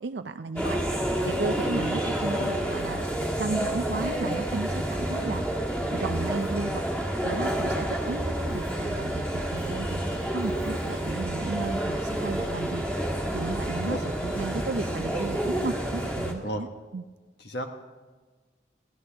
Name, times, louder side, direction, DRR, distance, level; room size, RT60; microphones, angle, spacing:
voice 1, 0.0-0.8 1.2-3.0 3.4-5.4 5.9-6.8 7.2-12.8 13.3-16.7 16.9-17.0, right 3 dB, 70° right, 9 dB, 0.5 m, -34 dB
sound 1, 0.6-16.3, right 1 dB, 5° left, 1.6 m, -29 dB
voice 2, 13.8-14.0 16.4-16.6 17.4-17.7, equal, 65° left, 4 dB, 1.4 m, -32 dB
23.0 x 16.5 x 3.5 m, 1.3 s
head